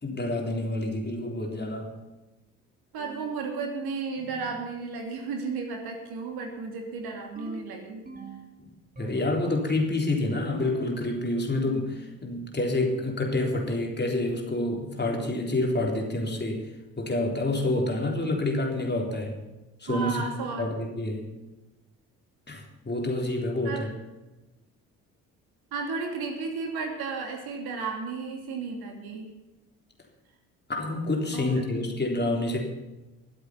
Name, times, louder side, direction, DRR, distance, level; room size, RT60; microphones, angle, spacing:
voice 1, 0.0-1.9 8.6-8.7 9.0-16.7 17.0-19.4 19.8-20.2 20.6-21.3 22.5-23.9 30.7-32.6, left 2 dB, 25° left, 0 dB, 3.7 m, -28 dB
voice 2, 2.9-8.0 19.9-20.7 23.6-23.9 25.7-29.3 31.3-31.6, right 4 dB, 60° right, 2 dB, 2.8 m, -33 dB
sound 1, 3.0-3.5 4.2-4.7 7.4-8.5 8.9-9.6 10.6-11.1 13.4-13.9 15.0-15.5, right 3 dB, 20° right, 3.1 m, -44 dB
22.0 x 7.9 x 5.8 m, 1.1 s
hypercardioid pair, 50°, 43 cm